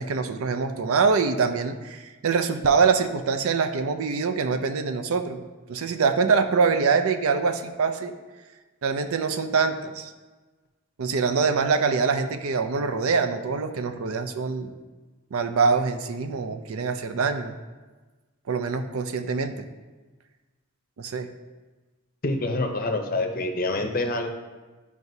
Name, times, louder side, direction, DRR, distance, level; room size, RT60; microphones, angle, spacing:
voice 1, 0.0-8.1 8.8-10.1 11.0-14.7 15.3-17.5 18.5-19.7 21.0-21.3, right 5 dB, 75° right, 8 dB, 0.5 m, -24 dB
voice 2, 22.2-24.3, left 2 dB, 40° left, 4 dB, 0.6 m, -26 dB
9.3 x 4.7 x 2.7 m, 1.3 s
head